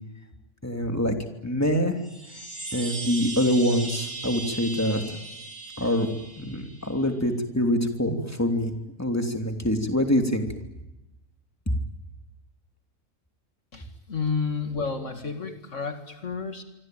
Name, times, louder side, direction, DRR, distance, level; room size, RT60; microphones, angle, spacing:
voice 1, 0.6-1.1 1.4-2.0 2.7-5.0 5.8-6.1 6.4-8.7 9.0-10.5, equal, 10° left, 4 dB, 3.0 m, -25 dB
sound 1, 2.0-7.0, right 3 dB, 65° right, 7.0 m, -38 dB
voice 2, 13.7-16.6, left 5 dB, 70° left, 6 dB, 2.4 m, -31 dB
25.5 x 25.0 x 9.3 m, 0.96 s
omnidirectional pair, 1.3 m